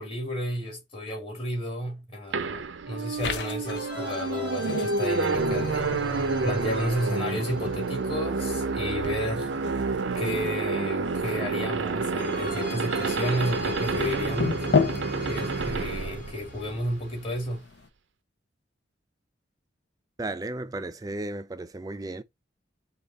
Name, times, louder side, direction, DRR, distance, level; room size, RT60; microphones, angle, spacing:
voice 1, 0.0-5.9 6.4-9.5 10.2-14.6 15.3-17.6, equal, 30° left, 2.1 m, -32 dB
sound 1, 2.3-17.1, right 4 dB, 75° right, 0.5 m, -29 dB
sound 2, 3.2-17.9, left 5 dB, 65° left, 0.7 m, -35 dB
sound 3, 3.6-9.7 12.2-17.6, equal, 45° left, 2.1 m, -37 dB
voice 2, 20.2-22.2, right 2 dB, 20° right, 0.3 m, -34 dB
5.1 x 2.4 x 3.9 m
head